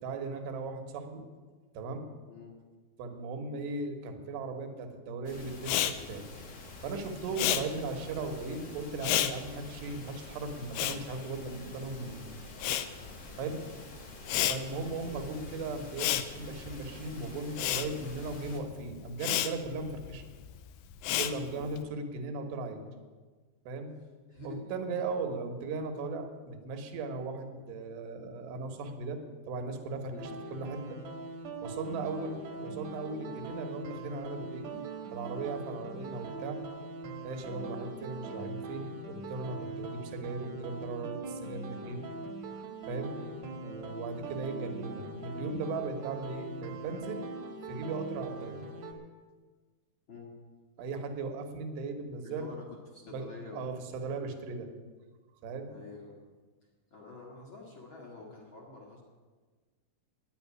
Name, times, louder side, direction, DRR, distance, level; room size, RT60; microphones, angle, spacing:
voice 1, 0.0-1.2 1.7-2.1 3.0-6.2 6.8-12.3 13.4-13.6 14.5-20.2 21.2-22.8 23.7-23.9 24.4-29.2 29.5-30.1 30.5-31.0 31.6-34.6 35.1-36.6 37.2-42.1 42.9-43.1 43.6-47.2 47.7-48.6 50.8-52.4 53.0-54.7 55.4-55.7, right 3 dB, 80° right, 5 dB, 3.4 m, -37 dB
sound 1, 5.2-18.6, left 1 dB, 65° left, 1.1 m, -48 dB
Respiratory sounds, 5.6-12.1 12.3-21.8, left 12 dB, 85° left, 2.4 m, -33 dB
voice 2, 24.3-24.6 30.1-30.4 32.1-32.3 37.5-37.8 43.1-43.4 50.1-50.3 52.2-53.9 55.7-56.2 56.9-59.0, left 4 dB, 50° left, -2 dB, 1.6 m, -48 dB
sound 2, 30.2-48.9, right 3 dB, 55° right, 2.0 m, -42 dB
10.5 x 8.9 x 9.7 m, 1.4 s
omnidirectional pair, 4.9 m